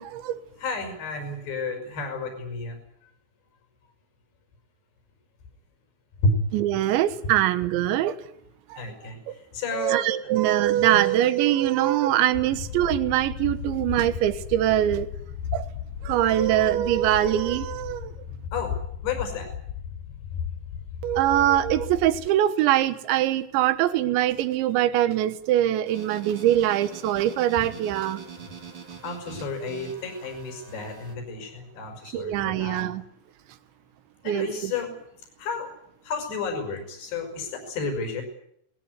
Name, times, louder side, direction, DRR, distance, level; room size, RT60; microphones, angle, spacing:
voice 1, 0.0-0.4 6.5-8.2 8.7-8.8 9.3-9.4 9.7-15.1 15.5-15.7 16.0-18.1 21.0-28.2 32.1-33.0 34.3-34.7, right 12 dB, 75° right, 12 dB, 3.5 m, -23 dB
voice 2, 0.6-3.1 6.2-6.4 8.8-10.0 10.9-11.1 18.5-19.5 29.0-32.9 34.2-35.0 35.4-35.7 36.0-38.2, left 3 dB, 60° left, 4 dB, 7.6 m, -31 dB
sound 1, 12.5-22.3, left 8 dB, 90° left, 1.9 m, -35 dB
sound 2, 25.8-31.1, right 6 dB, 40° right, 1.7 m, -43 dB
21.0 x 20.5 x 9.7 m, 0.71 s
omnidirectional pair, 5.5 m